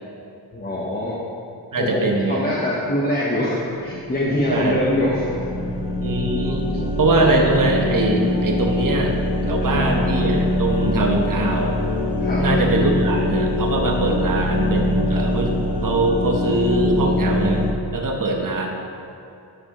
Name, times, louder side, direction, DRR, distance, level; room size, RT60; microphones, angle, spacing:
voice 1, 0.5-1.2 1.8-5.3 5.6-5.7 6.8-6.9 9.6-9.9 12.2-12.5, left 1 dB, 25° left, -5 dB, 1.0 m, -24 dB
voice 2, 1.7-2.5 4.5-4.8 6.0-6.6 7.0-9.2 9.5-11.8 12.4-17.6 17.9-18.7, right 2 dB, 50° right, 1 dB, 1.1 m, -22 dB
sound 1, 3.9-17.7, left 1 dB, 80° left, 0.8 m, -23 dB
13.0 x 4.8 x 3.0 m, 2.6 s
wide cardioid pair, 105°, 40 cm